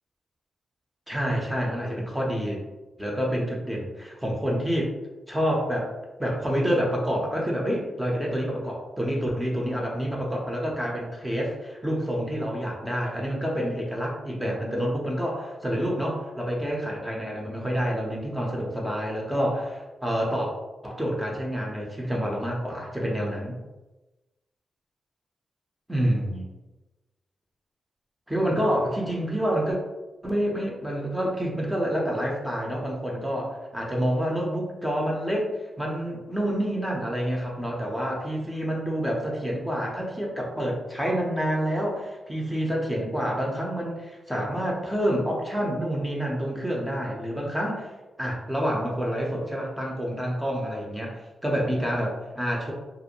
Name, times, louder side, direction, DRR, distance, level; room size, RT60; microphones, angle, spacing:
voice 1, 1.1-2.6 3.0-4.9 5.3-5.9 6.2-20.5 20.8-23.6 25.9-26.5 28.3-29.8 30.2-35.5 35.8-47.9 48.2-51.2 51.4-52.7, equal, 10° right, -2 dB, 0.6 m, -28 dB
2.4 x 2.0 x 2.8 m, 1.1 s
cardioid pair, 85°, 0 cm